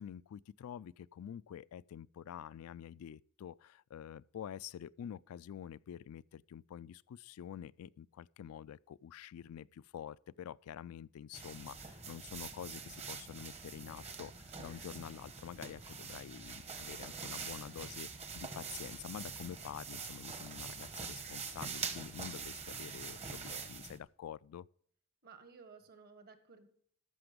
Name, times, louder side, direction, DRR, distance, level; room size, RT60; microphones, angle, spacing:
voice 1, 0.0-24.7, left 9 dB, 80° left, 0.3 m, -48 dB
sound 1, 11.3-24.0, right 5 dB, 30° right, 1.0 m, -45 dB
voice 2, 25.2-26.7, right 5 dB, 45° right, 1.5 m, -56 dB
14.0 x 5.9 x 5.1 m
head